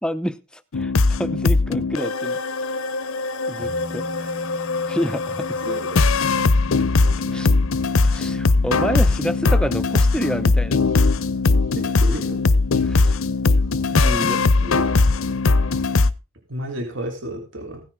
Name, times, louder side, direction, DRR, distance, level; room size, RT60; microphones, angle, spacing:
voice 1, 0.0-2.4 3.5-4.1 4.9-5.5 7.3-7.5 8.0-10.8 12.7-13.2 13.9-14.4, equal, 5° left, 0.6 m, -28 dB
sound 1, 0.7-16.1, left 3 dB, 80° left, 0.8 m, -20 dB
sound 2, 3.6-12.7 13.0-13.1, left 1 dB, 40° right, 5.3 m, -41 dB
voice 2, 5.6-6.0 11.8-12.4 14.6-15.2 16.5-17.8, equal, 60° right, 3.6 m, -32 dB
16.0 x 10.0 x 3.6 m
head